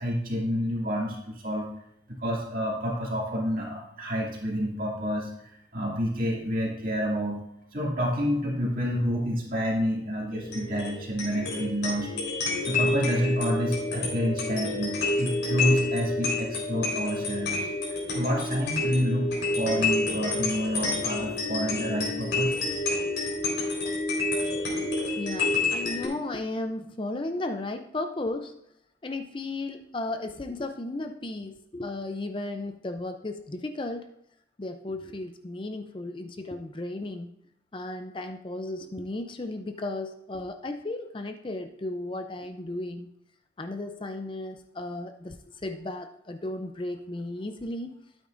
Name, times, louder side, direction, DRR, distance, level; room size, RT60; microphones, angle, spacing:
voice 1, 0.0-1.7 2.1-7.4 7.7-12.1 12.6-19.3 19.6-22.6, equal, 45° right, -3 dB, 2.3 m, -29 dB
sound 1, 10.3-26.1, left 2 dB, 70° left, 4.0 m, -29 dB
voice 2, 24.1-28.5 29.0-34.1 34.6-37.3 37.7-43.1 43.6-48.0, left 2 dB, 25° left, 7 dB, 0.4 m, -35 dB
12.5 x 8.8 x 2.5 m, 0.77 s
head